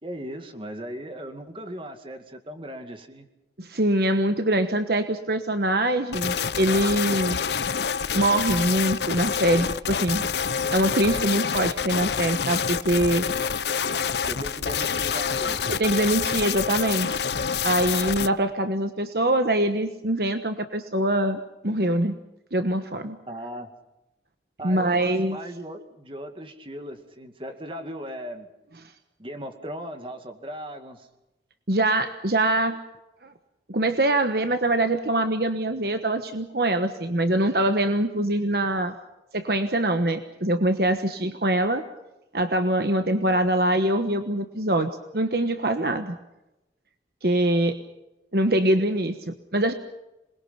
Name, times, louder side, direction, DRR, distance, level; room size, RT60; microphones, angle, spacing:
voice 1, 0.0-3.3 14.3-15.7 23.3-23.7 24.6-28.5 29.2-31.1, equal, 30° right, 6 dB, 2.3 m, -37 dB
voice 2, 3.6-7.4 8.1-10.2 10.7-13.3 15.7-17.2 17.6-22.1 22.5-23.2 24.6-25.4 31.7-32.8 33.2-33.3 33.7-39.0 39.3-41.8 42.3-46.2 47.2-47.8 48.3-49.7, right 1 dB, 55° right, 7 dB, 1.3 m, -23 dB
sound 1, 6.1-18.3, left 6 dB, 70° left, 0.7 m, -27 dB
27.0 x 21.5 x 5.9 m, 0.96 s
head